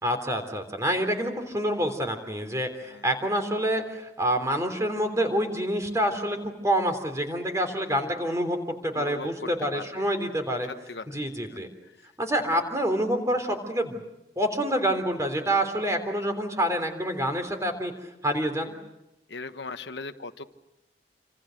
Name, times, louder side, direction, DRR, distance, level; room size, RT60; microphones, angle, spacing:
voice 1, 0.0-8.6 8.8-10.7 11.1-11.7 12.2-14.0 14.4-17.9 18.2-18.8, right 1 dB, 20° right, 6 dB, 3.4 m, -27 dB
voice 2, 8.9-10.1 10.7-11.2 11.5-11.6 19.3-20.4, left 3 dB, 75° left, 8 dB, 1.2 m, -39 dB
27.5 x 26.5 x 6.5 m, 0.90 s
head